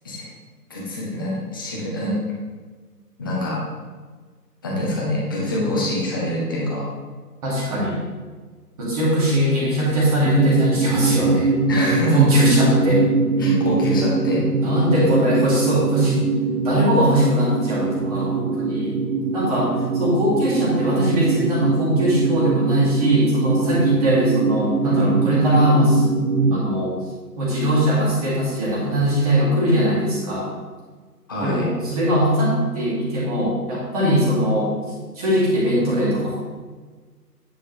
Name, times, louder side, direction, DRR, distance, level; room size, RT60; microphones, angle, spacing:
voice 1, 0.7-2.2 3.2-3.6 4.6-6.9 11.7-12.2 13.4-14.7 31.3-31.7, left 1 dB, 15° left, -4 dB, 0.9 m, -25 dB
voice 2, 7.4-8.0 8.8-11.5 12.1-13.0 14.6-16.2 16.6-19.0 19.3-26.0 26.5-26.9 27.4-30.5 31.4-34.8 35.2-36.4, equal, 20° right, -6 dB, 2.2 m, -20 dB
sound 1, 10.2-26.6, right 4 dB, 80° right, 0.8 m, -22 dB
10.0 x 7.5 x 3.2 m, 1.4 s
figure-of-eight pair, 145°, 49 cm